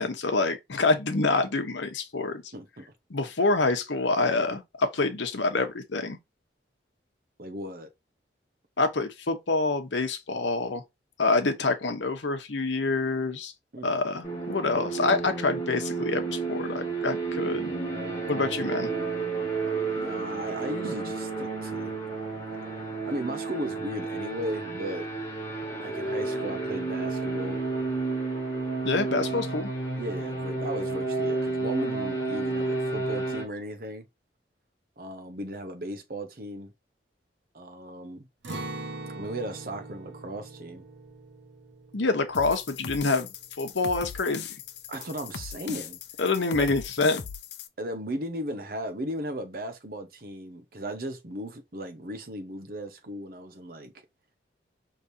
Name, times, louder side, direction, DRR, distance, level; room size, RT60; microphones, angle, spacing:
voice 1, 0.0-2.4 3.1-6.2 8.8-10.8 11.2-13.5 13.8-17.7 18.3-18.9 28.8-29.7 41.9-43.3 43.6-44.4 46.2-47.2, left 3 dB, 85° left, 0.9 m, -26 dB
voice 2, 2.5-2.8 7.4-7.9 13.7-13.9 19.9-21.9 23.0-25.1 25.8-27.6 29.3-29.5 30.0-34.1 35.0-36.7 37.5-38.3 39.2-40.8 44.9-46.0 46.6-46.7 47.8-53.9, right 1 dB, 50° right, 0.9 m, -36 dB
sound 1, 14.2-33.4, right 3 dB, 15° left, 1.5 m, -31 dB
Acoustic guitar, 38.4-44.3 44.7-44.8 45.3-45.8, right 2 dB, 85° right, 1.2 m, -42 dB
sound 2, 42.3-47.7, left 7 dB, 70° left, 0.6 m, -39 dB
5.0 x 3.3 x 2.7 m
head